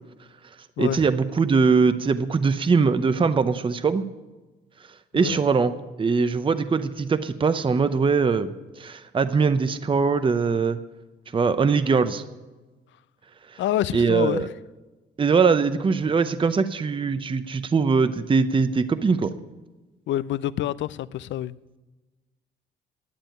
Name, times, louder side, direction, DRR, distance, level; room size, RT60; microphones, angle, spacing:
voice 1, 0.8-4.0 5.1-10.8 11.3-12.2 13.5-13.6 13.9-14.5 15.2-19.3, right 5 dB, 25° right, 0.6 m, -22 dB
voice 2, 13.6-14.5 20.1-21.6, left 12 dB, 70° left, 0.5 m, -27 dB
10.5 x 8.7 x 9.1 m
cardioid pair, 90°, 20 cm